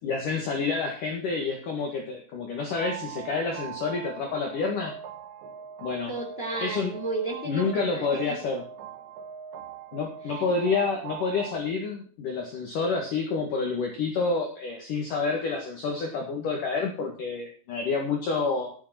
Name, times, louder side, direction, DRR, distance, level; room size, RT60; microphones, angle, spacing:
voice 1, 0.0-4.9 5.8-6.1 6.6-6.9 7.5-8.6 9.9-18.7, left 4 dB, 55° left, 1 dB, 2.9 m, -28 dB
sound 1, 2.7-11.6, right 9 dB, 75° right, 3.1 m, -41 dB
voice 2, 6.1-8.3 10.2-10.5, right 2 dB, 35° left, 1 dB, 1.0 m, -33 dB
13.0 x 9.0 x 4.5 m, 0.43 s
omnidirectional pair, 5.3 m